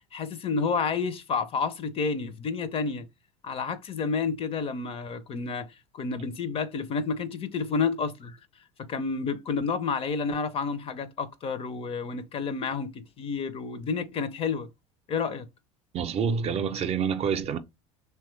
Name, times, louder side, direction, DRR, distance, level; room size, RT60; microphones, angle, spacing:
voice 1, 0.1-3.1 3.4-8.4 8.9-14.7 15.1-15.5, left 5 dB, 40° left, 0.5 m, -30 dB
voice 2, 15.9-17.6, right 6 dB, 40° right, 0.5 m, -27 dB
3.0 x 2.2 x 3.0 m
hypercardioid pair, 85°, 16 cm